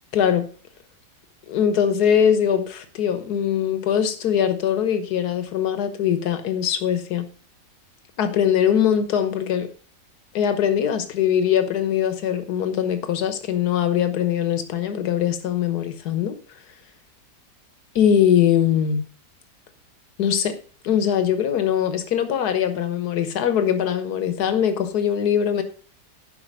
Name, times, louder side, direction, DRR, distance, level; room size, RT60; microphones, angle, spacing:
voice 1, 0.1-0.4 1.5-7.3 8.2-9.7 10.4-16.4 18.0-19.0 20.2-20.5 20.8-25.6, left 9 dB, 70° left, 9 dB, 1.6 m, -21 dB
11.0 x 5.7 x 5.3 m, 0.42 s
omnidirectional pair, 1.8 m